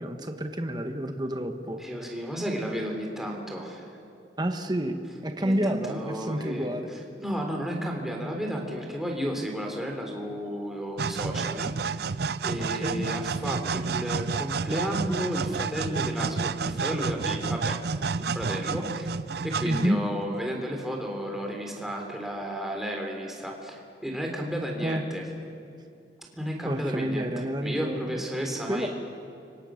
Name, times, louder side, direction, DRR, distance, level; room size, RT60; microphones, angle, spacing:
voice 1, 0.0-1.8 4.4-6.9 12.6-13.1 19.6-20.0 24.8-25.0 26.6-28.3 28.7-28.9, right 1 dB, 25° right, 5 dB, 1.3 m, -29 dB
voice 2, 1.8-3.9 5.4-12.2 12.4-19.1 19.4-25.2 26.3-28.9, equal, ahead, 0 dB, 3.6 m, -33 dB
sound 1, 11.0-20.2, right 5 dB, 60° right, 0.5 m, -30 dB
29.5 x 25.0 x 6.5 m, 2.6 s
head